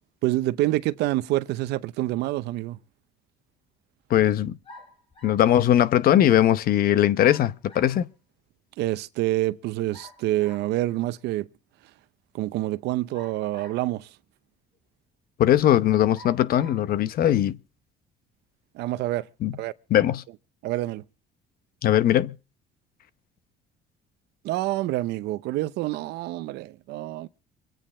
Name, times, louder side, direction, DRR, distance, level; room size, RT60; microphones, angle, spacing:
voice 1, 0.2-2.8 8.8-11.5 12.3-14.1 18.7-19.3 19.6-19.7 20.6-21.0 24.4-27.3, right 16 dB, 85° right, 0.7 m, -27 dB
voice 2, 4.1-4.6 5.2-8.1 15.4-17.6 19.4-19.5 19.9-20.2 21.8-22.4, left 11 dB, 60° left, 0.8 m, -20 dB
sound 1, 4.6-5.5 7.2-8.0 9.9-10.7 13.1-14.0 14.7-14.8 16.1-16.9, left 1 dB, 35° left, 4.7 m, -49 dB
25.0 x 9.2 x 4.3 m
cardioid pair, 110°, 17 cm